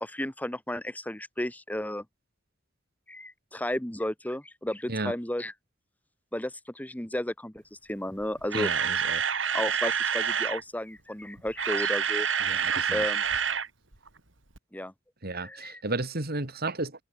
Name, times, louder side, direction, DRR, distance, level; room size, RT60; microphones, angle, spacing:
voice 1, 0.0-2.1 3.1-5.5 6.3-7.6 7.9-8.7 9.5-12.4 12.9-13.2 14.7-14.9 15.3-15.8, left 1 dB, 10° left, 1.7 m, -33 dB
Camera, 8.2-10.6 11.4-13.7 13.9-14.1 14.6-14.7, right 7 dB, 70° right, 3.3 m, -27 dB
voice 2, 8.5-9.3 12.4-13.0 15.2-17.0, right 2 dB, 55° right, 3.1 m, -33 dB
open air
head